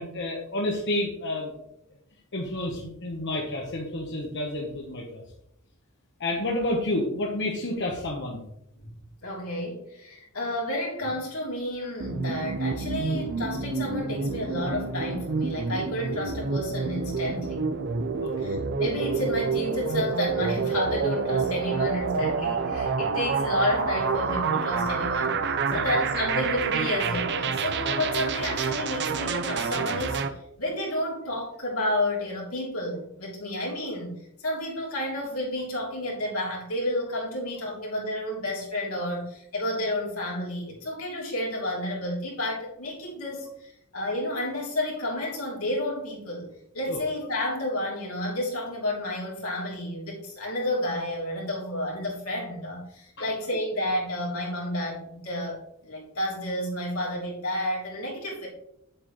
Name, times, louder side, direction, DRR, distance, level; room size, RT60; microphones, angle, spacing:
voice 1, 0.0-1.5 2.3-5.2 6.2-8.4 18.2-18.3 25.7-25.8 46.9-47.0 53.2-53.3, left 1 dB, 55° left, -1 dB, 1.2 m, -30 dB
voice 2, 9.2-17.6 18.4-30.2 30.6-46.5 46.7-58.5, left 1 dB, 80° left, -3 dB, 3.4 m, -31 dB
sound 1, 12.0-30.3, right 5 dB, 55° right, 0.6 m, -28 dB
9.0 x 7.7 x 3.2 m, 0.77 s
head